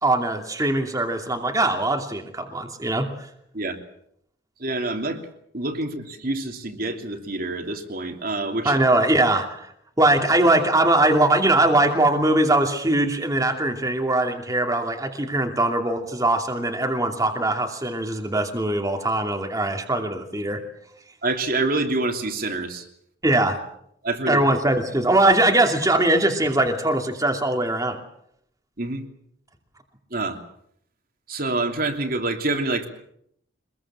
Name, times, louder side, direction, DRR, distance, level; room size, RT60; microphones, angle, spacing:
voice 1, 0.0-3.1 8.6-9.7 10.0-20.6 23.2-23.6 24.3-28.0, right 2 dB, 20° right, 3 dB, 2.7 m, -21 dB
voice 2, 4.6-5.2 5.5-8.8 21.2-22.8 24.0-24.4 28.8-29.0 30.1-30.4 31.3-32.9, right 2 dB, 50° right, 4 dB, 3.1 m, -26 dB
25.5 x 21.5 x 7.5 m, 0.72 s
head